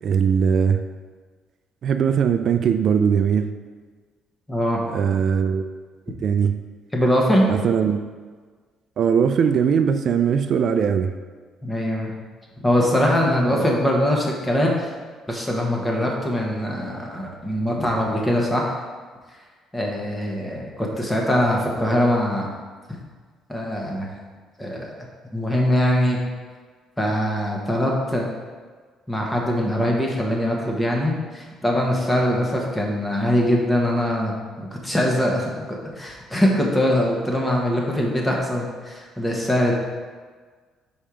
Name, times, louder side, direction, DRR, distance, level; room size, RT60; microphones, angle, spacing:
voice 1, 0.0-0.8 1.8-3.5 4.9-5.7 6.1-6.5 7.5-8.0 9.0-11.1 13.5-13.6, right 7 dB, 55° right, 8 dB, 0.3 m, -20 dB
voice 2, 4.5-5.1 6.9-7.5 11.6-12.1 12.6-14.9 15.3-18.8 19.7-22.5 23.5-24.1 24.6-24.9 25.3-26.2 27.0-28.2 29.1-39.7, equal, 10° left, -1 dB, 1.2 m, -22 dB
5.4 x 4.4 x 4.9 m, 1.5 s
cardioid pair, 115°, 0 cm